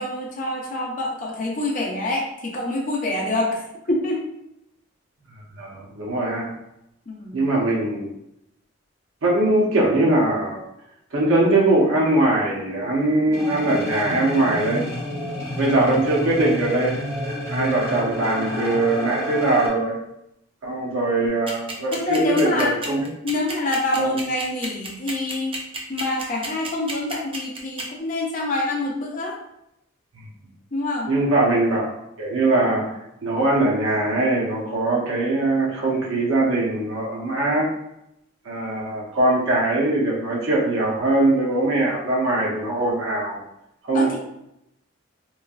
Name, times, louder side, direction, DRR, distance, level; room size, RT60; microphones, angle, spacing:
voice 1, 0.0-4.2 7.1-7.4 18.2-18.8 21.9-22.8 23.2-25.6 25.9-29.3 30.7-31.1 43.9-44.2, left 2 dB, 40° left, -2 dB, 0.6 m, -26 dB
voice 2, 5.6-6.5 7.3-8.1 9.2-10.6 11.1-14.8 15.6-16.9 17.5-20.0 20.6-23.0 24.0-24.2 31.1-31.9 32.2-32.8 33.2-37.6 38.4-43.4 43.9-44.2, right 2 dB, 90° right, -4 dB, 0.7 m, -21 dB
sound 1, 13.3-19.7, left 1 dB, 15° left, 1.0 m, -30 dB
sound 2, 21.5-27.8, right 3 dB, 25° right, 0.4 m, -31 dB
3.1 x 2.4 x 2.3 m, 0.82 s
head